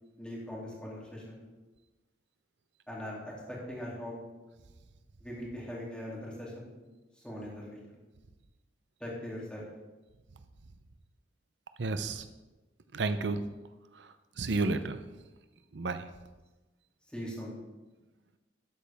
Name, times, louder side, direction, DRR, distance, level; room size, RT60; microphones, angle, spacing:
voice 1, 0.2-1.4 2.9-4.1 5.2-6.7 7.2-7.8 9.0-9.6 17.1-17.5, equal, 5° left, -5 dB, 2.8 m, -40 dB
voice 2, 11.8-12.2 12.9-13.4 14.4-15.0 15.7-16.0, right 3 dB, 75° right, 10 dB, 0.6 m, -31 dB
12.5 x 8.5 x 3.5 m, 1.2 s
head